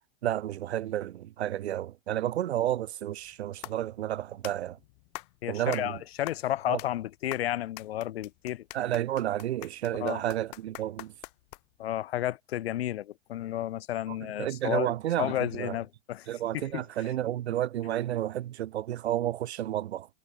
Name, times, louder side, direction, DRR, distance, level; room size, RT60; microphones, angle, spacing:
voice 1, 0.2-4.8 5.5-6.0 6.7-6.8 8.7-11.1 14.1-15.8 16.3-20.1, right 12 dB, 90° right, 1.6 m, -31 dB
sound 1, 3.2-11.9, left 28 dB, 40° left, 6.1 m, -46 dB
voice 2, 5.4-8.6 10.0-10.2 11.8-14.9 15.2-16.3 16.5-16.8, left 13 dB, 70° left, 2.3 m, -32 dB
supercardioid pair, 170°, 31 cm